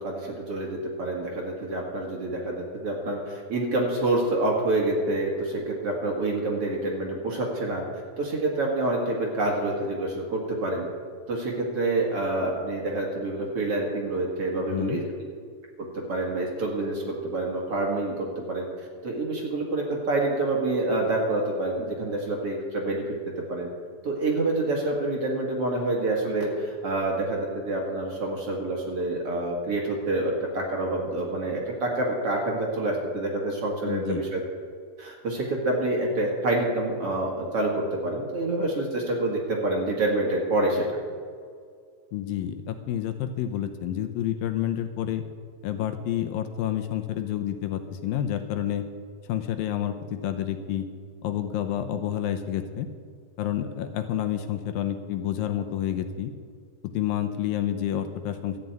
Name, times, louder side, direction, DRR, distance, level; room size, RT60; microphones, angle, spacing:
voice 1, 0.0-7.8 8.2-10.9 11.3-15.0 15.8-18.7 19.0-23.2 23.5-23.7 24.0-34.4 35.0-40.8, right 2 dB, 45° right, -2 dB, 2.5 m, -27 dB
voice 2, 14.7-15.0 33.8-34.3 42.1-45.2 45.6-48.9 49.3-50.9 51.2-52.9 53.4-56.3 56.9-58.6, left 11 dB, 80° left, 8 dB, 2.4 m, -29 dB
13.5 x 7.5 x 9.2 m, 2.1 s
omnidirectional pair, 4.3 m